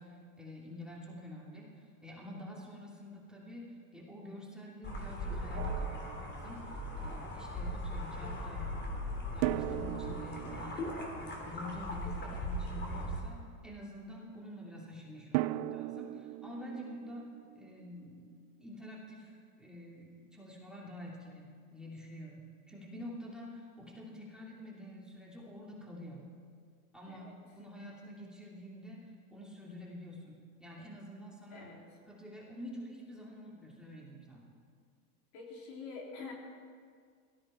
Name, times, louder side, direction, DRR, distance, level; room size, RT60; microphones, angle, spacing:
voice 1, 0.0-6.6 7.0-10.8 11.2-13.4 13.6-17.3 17.5-18.3 18.6-26.3 26.9-31.7 32.1-34.5, left 1 dB, ahead, -4 dB, 2.9 m, -47 dB
sound 1, 4.8-13.2, equal, 25° left, 3.4 m, -39 dB
Drum, 5.6-6.9 9.4-12.4 15.3-18.2, right 16 dB, 45° right, 0.5 m, -39 dB
voice 2, 31.5-31.8 35.3-36.3, left 4 dB, 55° left, -1 dB, 3.5 m, -46 dB
17.0 x 14.0 x 4.4 m, 2.1 s
hypercardioid pair, 100°, 42 cm